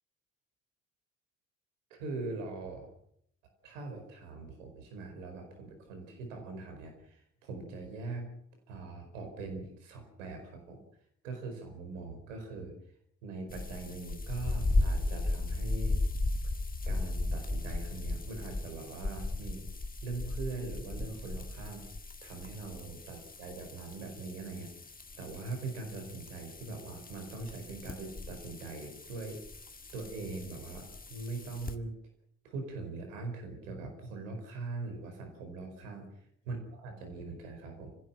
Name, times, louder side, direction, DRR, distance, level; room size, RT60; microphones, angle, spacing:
voice 1, 1.9-2.9 3.6-8.3 8.7-10.8 11.2-12.7 13.2-16.0 16.9-19.6 20.0-21.9 22.2-24.7 25.2-29.4 29.9-31.9 32.4-36.1 36.5-36.6 36.8-37.9, right 3 dB, 80° right, 5 dB, 4.9 m, -41 dB
sound 1, 13.5-31.7, left 2 dB, 20° left, 2.0 m, -36 dB
27.0 x 15.5 x 7.5 m, 0.73 s
figure-of-eight pair, 45°, 38 cm